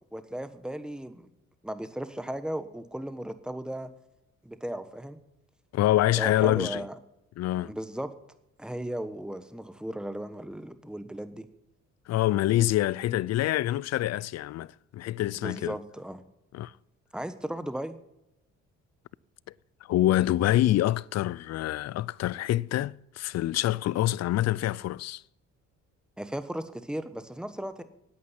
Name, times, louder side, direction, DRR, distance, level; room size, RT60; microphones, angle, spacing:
voice 1, 0.1-1.3 1.6-3.9 4.4-5.2 6.2-6.9 7.7-8.1 8.6-11.5 15.4-16.2 17.1-18.0 26.2-27.8, right 1 dB, 5° right, 1.1 m, -36 dB
voice 2, 5.7-6.8 7.4-7.7 12.1-15.8 16.5-16.7 19.9-25.2, left 14 dB, 60° left, 0.4 m, -26 dB
10.0 x 8.5 x 9.8 m
cardioid pair, 90°, 30 cm